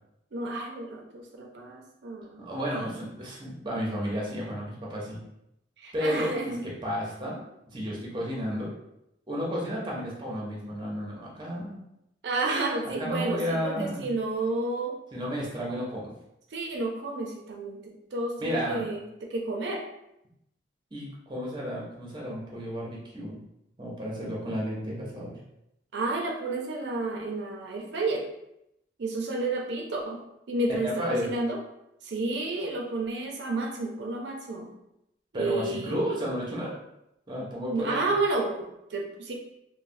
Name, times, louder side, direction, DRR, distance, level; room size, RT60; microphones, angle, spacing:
voice 1, 0.3-2.4 5.8-6.6 12.2-15.0 16.5-19.0 19.3-19.8 25.9-28.2 29.0-30.2 30.5-31.6 32.0-34.7 35.3-36.0 37.7-39.3, right 2 dB, 80° right, 0 dB, 0.5 m, -31 dB
voice 2, 2.4-5.2 5.9-7.4 7.7-8.7 9.3-11.8 13.0-14.1 15.1-16.1 18.4-18.8 20.9-23.4 23.8-25.4 30.8-31.3 35.3-36.8 37.3-38.1, equal, 25° right, -4 dB, 0.7 m, -32 dB
3.1 x 2.1 x 2.6 m, 0.82 s
head